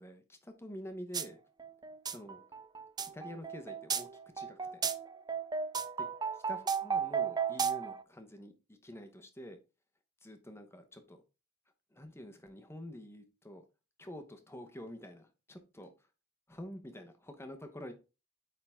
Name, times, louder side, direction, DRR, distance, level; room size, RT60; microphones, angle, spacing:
voice 1, 0.0-1.4 2.1-2.4 3.1-4.1 4.3-4.8 6.5-9.6 10.2-11.2 11.9-13.6 14.0-15.9 16.5-17.9, left 1 dB, 15° left, 1.0 m, -47 dB
sound 1, 1.1-1.3 1.6-8.0, right 6 dB, 20° right, 0.5 m, -34 dB
8.8 x 3.8 x 3.6 m
head